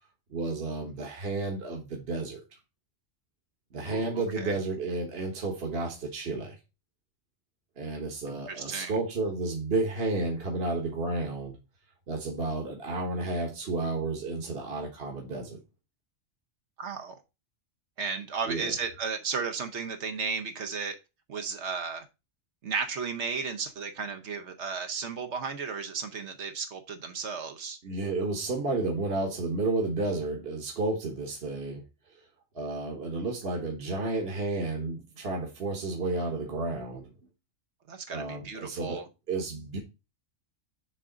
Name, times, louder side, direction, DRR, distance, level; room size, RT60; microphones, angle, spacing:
voice 1, 0.3-2.4 3.7-6.6 7.8-11.5 12.1-15.6 18.5-18.7 27.8-31.8 32.5-37.1 38.1-39.0 39.3-39.8, right 3 dB, 60° right, 1.5 m, -31 dB
voice 2, 3.8-4.6 8.3-8.9 16.8-17.1 18.0-21.0 21.3-22.0 22.6-27.8 37.9-39.1, right 5 dB, 75° right, 1.1 m, -34 dB
6.9 x 3.7 x 5.0 m
omnidirectional pair, 1.2 m